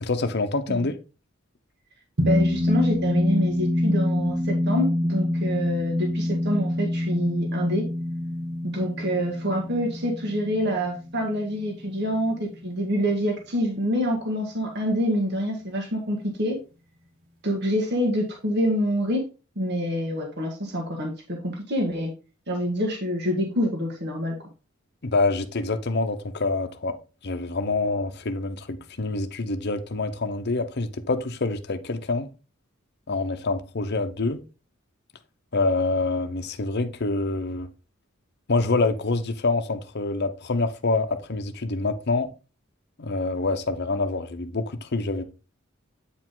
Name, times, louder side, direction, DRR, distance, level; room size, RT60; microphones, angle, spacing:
voice 1, 0.0-0.9 25.0-27.0 27.2-32.3 33.1-34.4 35.5-37.7 38.5-42.3 43.0-45.2, left 3 dB, 55° left, 0.8 m, -26 dB
sound 1, 2.2-12.9, left 1 dB, 80° right, 1.9 m, -26 dB
voice 2, 2.3-7.8 8.6-16.6 17.4-19.2 19.6-21.1 21.4-22.1 22.5-24.4, equal, 55° right, 1.7 m, -26 dB
8.7 x 4.9 x 3.8 m
head